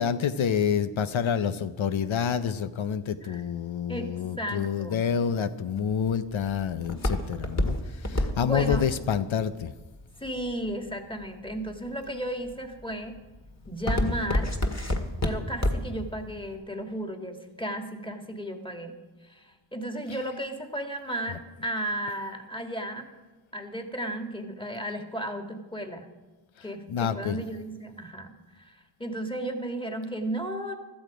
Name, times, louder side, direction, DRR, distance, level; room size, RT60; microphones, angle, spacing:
voice 1, 0.0-9.7 14.0-14.4 26.6-27.4, left 7 dB, 85° left, 11 dB, 0.7 m, -28 dB
voice 2, 3.9-5.0 8.4-8.8 10.2-13.2 13.7-14.6 15.2-18.9 19.2-23.1 23.5-26.1 26.6-30.8, right 1 dB, 10° left, 5 dB, 1.9 m, -34 dB
Walk footsteps, 5.8-10.9 11.5-11.9 12.5-12.8 13.2-16.0 16.4-16.5, left 1 dB, 35° left, 1.8 m, -27 dB
16.0 x 13.0 x 5.0 m, 1.2 s
wide cardioid pair, 60°, 46 cm